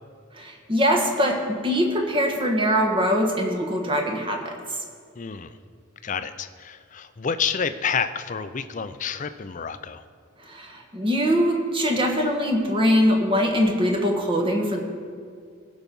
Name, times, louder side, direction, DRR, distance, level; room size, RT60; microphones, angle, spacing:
voice 1, 0.3-4.6 10.4-14.8, equal, 25° right, 3 dB, 1.4 m, -22 dB
voice 2, 5.2-5.6 6.0-10.0, left 6 dB, 40° left, 11 dB, 0.5 m, -29 dB
17.5 x 6.0 x 5.4 m, 2.2 s
head